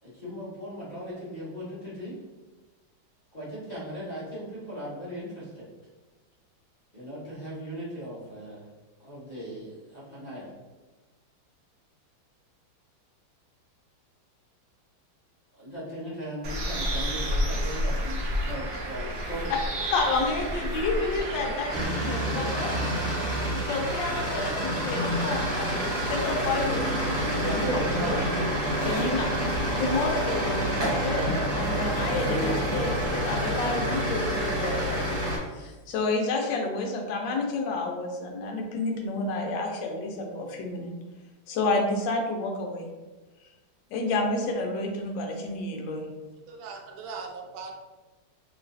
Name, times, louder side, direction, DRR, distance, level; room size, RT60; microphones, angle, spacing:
voice 1, 0.0-2.2 3.3-5.6 6.9-8.6 9.0-10.5 15.5-19.5, equal, 40° left, -9 dB, 0.6 m, -38 dB
Bird, 16.4-21.8, equal, 70° right, 0.8 m, -30 dB
voice 2, 19.9-22.7 23.3-28.2 28.8-29.3 29.8-31.2 31.6-35.3 35.5-40.9 41.5-42.9 43.9-46.1, left 3 dB, 75° left, 2 dB, 1.2 m, -30 dB
sound 1, 21.7-35.4, equal, 45° right, 1.4 m, -27 dB
voice 3, 46.5-47.7, right 5 dB, 85° right, 1 dB, 1.4 m, -39 dB
3.1 x 3.0 x 2.6 m, 1.2 s
omnidirectional pair, 2.1 m